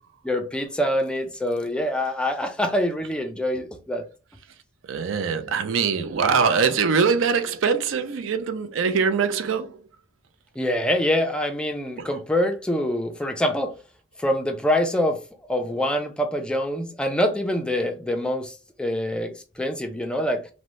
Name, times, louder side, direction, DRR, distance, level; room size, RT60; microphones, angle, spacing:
voice 1, 0.2-4.0 10.6-13.7 14.2-15.2 15.5-20.5, left 1 dB, 5° left, 0.3 m, -25 dB
voice 2, 4.9-9.8 12.0-12.1, right 5 dB, 80° right, 0.4 m, -23 dB
2.6 x 2.0 x 3.0 m
head